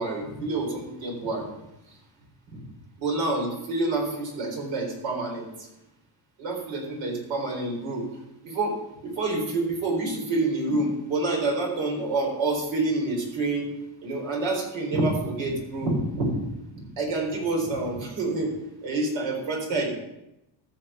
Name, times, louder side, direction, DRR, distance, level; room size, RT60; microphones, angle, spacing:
voice 1, 0.0-1.5 3.0-5.5 6.4-8.1 8.4-8.8 9.0-13.7 14.0-16.3 17.0-18.5 18.8-19.9, right 2 dB, 85° right, 1 dB, 4.1 m, -27 dB
14.5 x 6.3 x 5.6 m, 0.88 s
cardioid pair, 120°, 42 cm